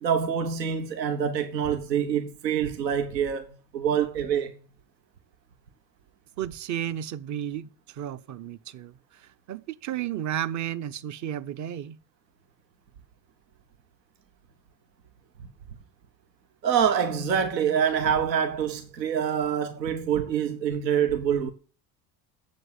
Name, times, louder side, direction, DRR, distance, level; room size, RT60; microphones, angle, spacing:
voice 1, 0.0-3.5 3.7-4.5 16.6-21.5, right 8 dB, 80° right, 1.0 m, -25 dB
voice 2, 6.4-8.9 9.5-12.0, right 11 dB, 35° right, 0.8 m, -33 dB
7.8 x 7.4 x 8.0 m
figure-of-eight pair, 55°, 49 cm